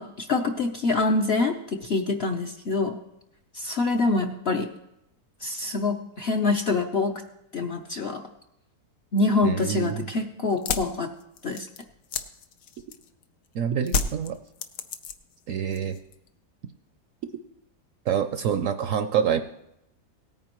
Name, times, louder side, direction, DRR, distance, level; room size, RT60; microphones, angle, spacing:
voice 1, 0.0-2.9 3.5-4.7 5.4-7.2 7.5-8.2 9.1-11.1 11.4-11.7, left 3 dB, 55° left, 4 dB, 0.7 m, -25 dB
voice 2, 9.4-10.1 13.5-14.4 15.5-16.0 18.1-19.4, right 8 dB, 70° right, 9 dB, 0.8 m, -26 dB
sound 1, 10.5-13.2 13.9-15.4 15.7-16.3, left 5 dB, 85° left, 1.4 m, -31 dB
17.5 x 9.3 x 3.0 m, 0.83 s
omnidirectional pair, 1.7 m